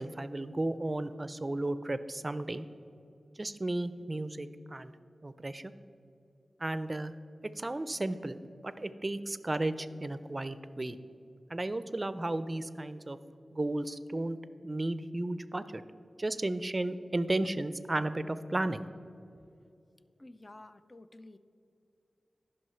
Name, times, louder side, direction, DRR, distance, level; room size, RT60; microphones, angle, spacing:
voice 1, 0.0-2.7 3.4-4.9 5.2-5.7 6.6-7.1 7.4-8.4 8.6-11.0 11.5-13.2 13.5-14.4 14.6-15.8 16.2-18.9, right 2 dB, 35° right, 13 dB, 0.4 m, -34 dB
voice 2, 20.2-21.4, left 2 dB, 35° left, 11 dB, 0.4 m, -51 dB
11.0 x 5.5 x 5.6 m, 2.6 s
cardioid pair, 50°, 0 cm